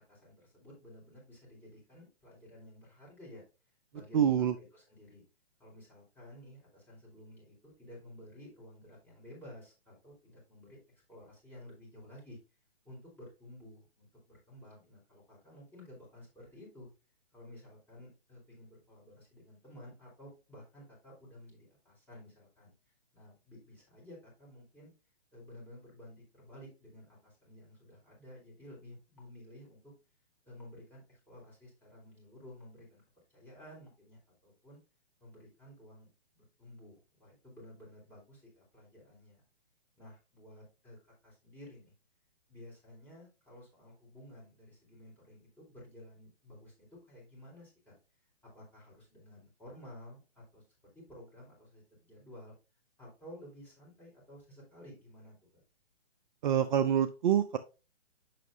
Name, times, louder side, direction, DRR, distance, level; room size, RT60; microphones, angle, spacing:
voice 1, 0.0-3.4 3.9-4.2 4.5-5.2 5.6-10.8 11.1-12.4 12.8-16.9 17.3-22.7 23.1-24.9 25.3-29.9 30.4-33.0 33.3-34.8 35.2-39.4 40.0-41.9 42.5-46.7 47.1-47.9 48.5-50.6 50.9-52.5 53.0-55.6, left 1 dB, 5° left, -5 dB, 4.4 m, -53 dB
voice 2, 4.1-4.6 56.4-57.6, right 9 dB, 45° right, 9 dB, 0.6 m, -26 dB
7.5 x 5.9 x 2.7 m, 0.29 s
hypercardioid pair, 135°, 32 cm